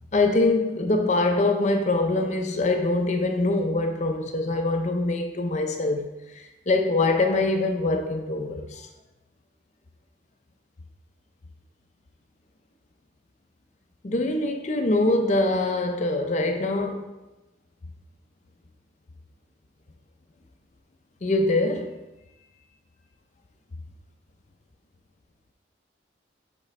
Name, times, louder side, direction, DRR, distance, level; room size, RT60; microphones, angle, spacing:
voice 1, 0.1-8.9 14.0-17.1 21.2-22.0, left 2 dB, 40° left, 4 dB, 0.5 m, -24 dB
7.3 x 4.4 x 3.2 m, 1.0 s
head